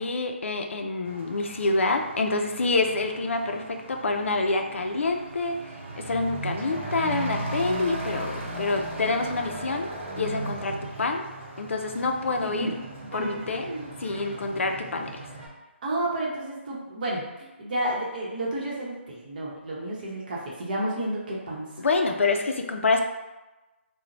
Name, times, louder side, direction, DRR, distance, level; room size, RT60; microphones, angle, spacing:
voice 1, 0.0-5.7 6.0-9.9 10.2-11.2 11.6-12.7 13.1-13.7 14.0-15.2 21.8-23.0, left 3 dB, 85° left, 4 dB, 0.4 m, -27 dB
Truck / Accelerating revving vroom, 1.0-15.5, right 1 dB, 85° right, 0.7 m, -37 dB
voice 2, 12.3-12.7 13.2-13.9 14.3-14.4 15.8-21.9, right 1 dB, 45° right, -4 dB, 0.8 m, -31 dB
2.9 x 2.1 x 2.5 m, 1.1 s
hypercardioid pair, 160°, 7 cm